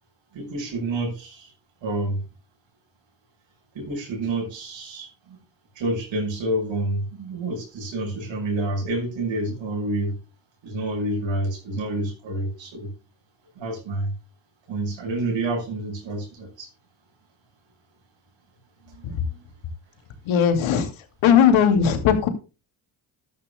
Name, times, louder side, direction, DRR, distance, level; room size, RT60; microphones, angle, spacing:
voice 1, 0.3-1.5 1.8-2.2 3.7-5.4 5.8-10.2 10.6-12.9 13.6-14.1 14.7-16.7 18.9-19.4, right 2 dB, 70° right, 3 dB, 7.2 m, -28 dB
voice 2, 20.3-20.9 21.2-22.3, left 8 dB, 80° left, 8 dB, 2.6 m, -18 dB
14.0 x 11.5 x 2.2 m, 0.31 s
cardioid pair, 75°, 47 cm